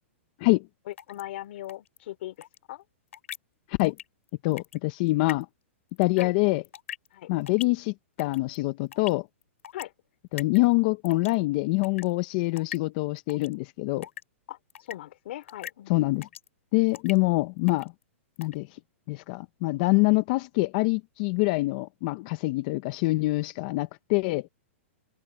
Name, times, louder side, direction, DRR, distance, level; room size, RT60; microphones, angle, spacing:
voice 1, 0.9-2.4 2.7-2.8 6.2-6.3 7.1-7.3 9.7-9.9 14.5-14.6 14.9-15.9, left 14 dB, 55° left, 3.8 m, -39 dB
sound 1, 1.0-1.2 1.7-2.0 2.4-2.6 3.1-3.4 3.8-4.0 4.3-4.8 5.3-5.4 6.0-6.2 6.6-7.1 7.5-7.6 8.2-8.6 8.9-9.1 9.6-9.8 10.4-10.6 11.0-11.3 11.8-12.0 12.6-12.8 13.3-13.5 14.0-14.2 14.7-14.9 15.5-15.7 16.2-16.5 16.9-17.2 17.7-17.8 18.4-18.5, left 9 dB, 75° left, 5.5 m, -39 dB
voice 2, 4.4-5.5 6.0-6.6 7.3-9.3 10.3-14.0 15.9-16.3 16.7-17.9 18.4-18.7 19.1-24.4, left 23 dB, 35° left, 0.7 m, -25 dB
open air
hypercardioid pair, 160°, 7 cm